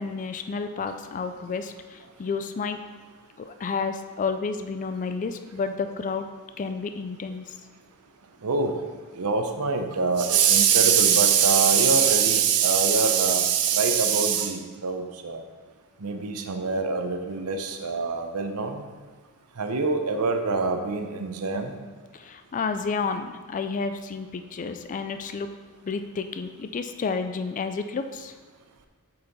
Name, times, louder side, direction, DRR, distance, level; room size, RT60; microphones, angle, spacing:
voice 1, 0.0-2.8 3.4-6.3 6.6-7.4 22.1-25.5 25.8-28.3, left 4 dB, 35° left, 8 dB, 0.3 m, -31 dB
voice 2, 8.4-8.8 9.2-15.4 16.0-18.8 19.6-21.7, right 6 dB, 80° right, 6 dB, 0.8 m, -23 dB
6.9 x 5.5 x 4.0 m, 1.5 s
head